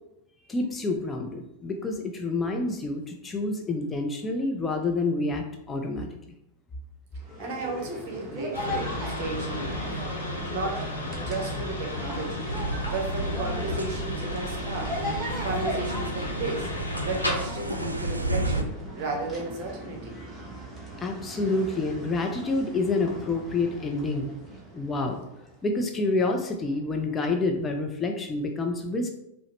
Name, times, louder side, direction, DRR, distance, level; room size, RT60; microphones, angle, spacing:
voice 1, 0.5-6.1 21.0-24.3 24.7-25.2 25.6-29.1, left 3 dB, 15° left, 2 dB, 0.4 m, -28 dB
sound 1, 7.2-25.7, equal, 10° right, 0.8 m, -39 dB
voice 2, 7.4-9.9 10.5-10.9 11.2-12.5 12.9-15.0 15.4-16.7 17.0-20.2, right 3 dB, 50° right, 1 dB, 0.9 m, -34 dB
sound 2, 8.5-17.4, left 1 dB, 85° left, 0.8 m, -33 dB
sound 3, 12.5-18.6, right 2 dB, 85° right, 0.3 m, -32 dB
4.7 x 2.0 x 2.9 m, 0.83 s
figure-of-eight pair, 90°, 0 cm